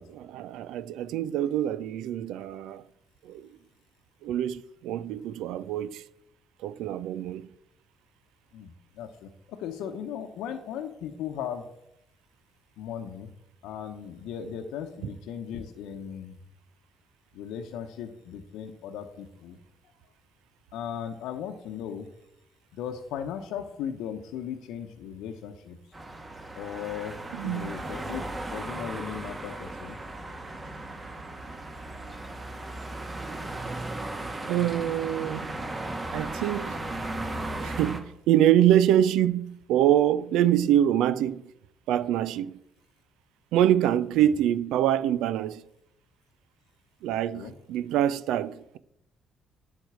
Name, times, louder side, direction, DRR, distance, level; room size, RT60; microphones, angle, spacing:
voice 1, 0.0-2.8 3.2-3.5 4.2-6.0 6.6-7.5 15.0-15.1 27.3-27.8 34.5-35.5 36.1-36.8 37.6-41.4 41.9-42.6 43.5-45.6 47.0-48.8, right 11 dB, 75° right, 0.5 m, -25 dB
voice 2, 8.5-11.6 12.8-13.3 13.6-16.3 17.3-19.6 20.7-22.1 22.8-25.8 26.6-27.1 27.4-28.2 28.5-30.0 44.2-44.3 47.3-47.5, left 8 dB, 75° left, 0.9 m, -37 dB
sound 1, 25.9-38.0, right 2 dB, 30° right, 2.1 m, -36 dB
8.5 x 6.5 x 8.1 m
hypercardioid pair, 50°, 0 cm